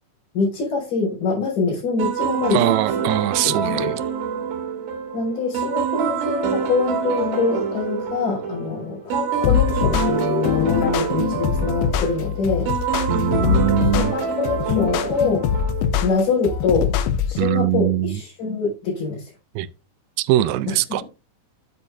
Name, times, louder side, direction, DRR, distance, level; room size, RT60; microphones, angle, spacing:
voice 1, 0.3-2.6 3.4-3.9 5.1-12.7 13.9-15.6 16.0-16.9 17.3-19.3 20.7-21.0, left 4 dB, 60° left, 5.8 m, -24 dB
sound 1, 2.0-16.2, right 6 dB, 60° right, 3.1 m, -26 dB
voice 2, 2.5-4.0 13.1-14.2 17.4-18.2 19.6-19.7 20.2-21.0, right 14 dB, 80° right, 2.3 m, -21 dB
sound 2, 9.4-17.4, left 9 dB, 90° left, 2.8 m, -23 dB
9.7 x 8.3 x 2.6 m
omnidirectional pair, 4.4 m